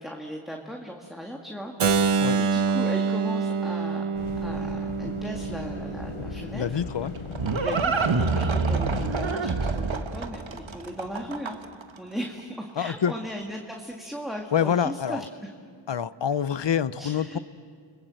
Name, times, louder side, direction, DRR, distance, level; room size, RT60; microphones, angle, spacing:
voice 1, 0.0-4.0 4.4-6.8 7.6-11.6 12.0-15.2 17.0-17.4, equal, ahead, 0 dB, 2.0 m, -37 dB
Keyboard (musical), 1.8-7.6, right 5 dB, 85° right, 0.8 m, -27 dB
sound 1, 4.1-9.4, left 7 dB, 80° left, 1.0 m, -38 dB
voice 2, 6.5-7.1 12.8-13.1 14.5-15.2 15.9-17.4, left 8 dB, 60° left, 16 dB, 0.7 m, -26 dB
Livestock farm animals working animals, 6.8-11.8, right 4 dB, 65° right, 1.3 m, -26 dB
29.5 x 21.5 x 7.7 m, 2.3 s
wide cardioid pair, 60°, 49 cm